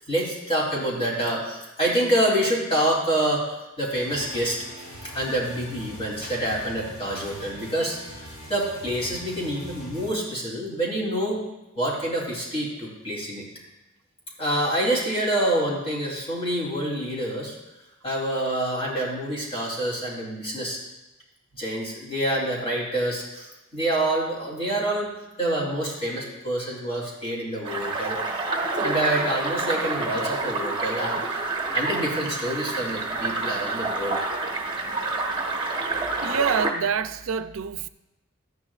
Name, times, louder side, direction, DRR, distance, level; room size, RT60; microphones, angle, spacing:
voice 1, 0.1-4.6 5.1-11.4 11.7-13.4 14.4-17.5 18.0-20.8 21.5-25.1 25.4-28.2 28.8-31.4 31.7-34.2, right 1 dB, 25° left, 3.3 m, -27 dB
sound 1, 3.9-10.1, equal, 65° left, 3.5 m, -42 dB
sound 2, 27.6-36.7, right 3 dB, 25° right, 1.0 m, -28 dB
voice 2, 36.2-37.9, right 6 dB, 75° right, 0.4 m, -26 dB
14.0 x 10.0 x 2.5 m
head